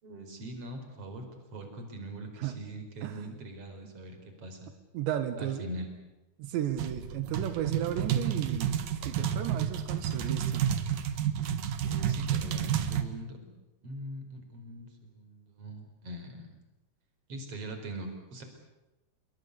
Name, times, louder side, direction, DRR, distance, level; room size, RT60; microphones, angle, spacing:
voice 1, 0.0-4.7 5.4-5.9 11.8-13.5 13.8-16.5 17.3-18.4, right 1 dB, 35° right, 5 dB, 5.4 m, -42 dB
voice 2, 4.9-5.7 6.4-10.7, right 10 dB, 85° right, 9 dB, 3.8 m, -34 dB
sound 1, 6.8-13.0, right 9 dB, 60° right, 2.7 m, -30 dB
27.0 x 23.5 x 8.3 m, 1.0 s
omnidirectional pair, 4.9 m